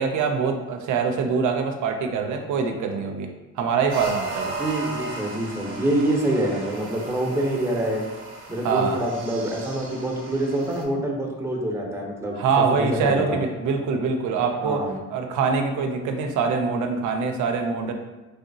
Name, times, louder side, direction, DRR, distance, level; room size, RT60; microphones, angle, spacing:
voice 1, 0.0-3.3 3.6-4.5 8.6-9.0 12.4-14.8 15.1-17.9, right 5 dB, 80° right, 4 dB, 0.5 m, -24 dB
sound 1, 3.9-10.8, right 2 dB, 45° right, 0.8 m, -36 dB
voice 2, 4.6-8.0 8.5-12.4 12.8-13.4 14.6-14.9, right 1 dB, 10° right, -1 dB, 0.7 m, -26 dB
3.2 x 2.7 x 2.6 m, 1.2 s
cardioid pair, 90°, 30 cm